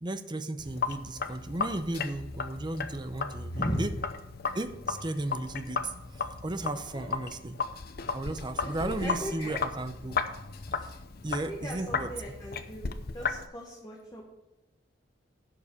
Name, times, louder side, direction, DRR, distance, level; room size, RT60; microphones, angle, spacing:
voice 1, 0.0-3.9 4.5-7.6 8.1-10.2 10.8-10.9 11.2-12.1, right 2 dB, 25° right, 10 dB, 0.6 m, -35 dB
Sink (filling or washing), 0.6-13.5, left 5 dB, 55° left, 0.7 m, -35 dB
voice 2, 3.5-3.8 6.9-7.1 8.6-9.5 11.5-12.9 13.1-14.2, equal, 20° left, -2 dB, 1.5 m, -37 dB
11.0 x 5.3 x 7.0 m, 0.96 s
head